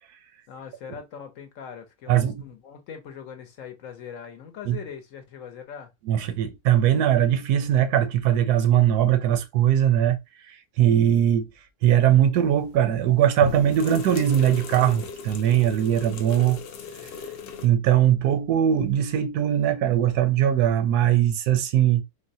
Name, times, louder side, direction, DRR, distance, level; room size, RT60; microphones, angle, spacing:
voice 1, 0.5-5.9, left 7 dB, 65° left, 1.0 m, -41 dB
voice 2, 2.1-2.5 4.7-4.8 6.1-10.2 10.5-11.5 11.8-16.6 17.6-22.0, right 10 dB, 85° right, 1.1 m, -20 dB
sound 1, 12.6-12.9 13.4-17.7, left 6 dB, 85° left, 0.5 m, -36 dB
3.9 x 2.1 x 2.6 m
omnidirectional pair, 1.6 m